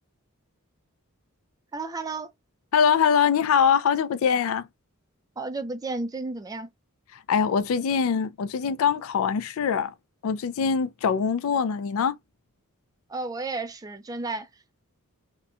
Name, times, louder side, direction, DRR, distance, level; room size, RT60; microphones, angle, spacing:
voice 1, 1.7-2.3 5.4-6.7 13.1-14.5, right 3 dB, 15° right, 0.3 m, -32 dB
voice 2, 2.7-4.7 7.3-9.9 10.2-12.2, left 7 dB, 65° left, 0.3 m, -23 dB
2.9 x 2.1 x 2.3 m
head